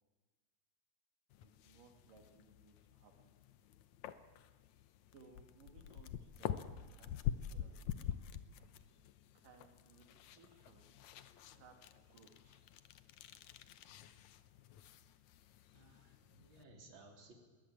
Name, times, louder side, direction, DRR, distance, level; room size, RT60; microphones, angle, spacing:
sound 1, 1.3-16.6, left 10 dB, 70° left, 2.1 m, -47 dB
voice 1, 1.4-3.3 5.1-8.1 8.6-8.7 9.3-11.0 11.5-12.7, right 5 dB, 85° right, 3 dB, 3.9 m, -64 dB
voice 2, 15.7-17.3, right 2 dB, 35° right, 1 dB, 4.3 m, -60 dB
22.0 x 20.0 x 8.9 m, 1.4 s
omnidirectional pair, 3.7 m